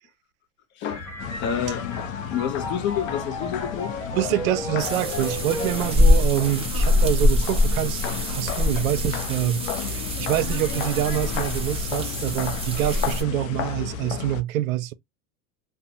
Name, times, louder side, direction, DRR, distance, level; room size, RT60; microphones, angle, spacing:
Welte Mignon Piano, 0.9-6.1, left 2 dB, 5° left, 1.2 m, -34 dB
sound 1, 1.2-14.4, left 8 dB, 80° left, 0.5 m, -32 dB
voice 1, 1.4-3.9 8.4-8.5 8.8-8.9, left 9 dB, 30° left, 0.4 m, -29 dB
voice 2, 4.1-14.9, right 14 dB, 85° right, 0.5 m, -26 dB
sound 2, 4.8-13.2, left 1 dB, 15° right, 0.8 m, -24 dB
2.6 x 2.0 x 2.6 m
supercardioid pair, 120°, 40 cm